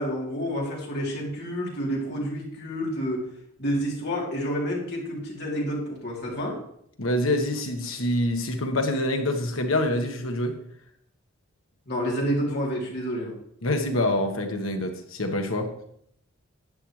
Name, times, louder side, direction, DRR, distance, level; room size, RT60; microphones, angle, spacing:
voice 1, 0.0-3.3 3.6-6.6 11.9-13.3, equal, 55° left, -3 dB, 3.2 m, -29 dB
voice 2, 7.0-10.5 13.6-15.7, left 1 dB, 80° left, 4 dB, 1.5 m, -26 dB
11.0 x 8.9 x 3.2 m, 0.69 s
head